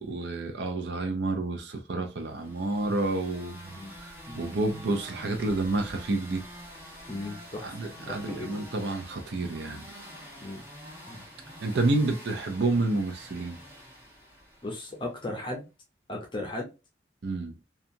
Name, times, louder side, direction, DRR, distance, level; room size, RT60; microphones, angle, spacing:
voice 1, 0.0-3.8 4.0-4.1 4.4-6.4 7.6-9.9 11.6-13.6 17.2-17.5, right 2 dB, 75° right, 0.5 m, -29 dB
sound 1, 2.2-15.1, equal, 10° right, 0.7 m, -46 dB
voice 2, 7.1-7.7 8.1-8.5 10.4-10.6 11.1-11.2 14.6-15.7 16.1-16.7, left 2 dB, 25° left, 0.5 m, -36 dB
2.7 x 2.3 x 2.5 m
head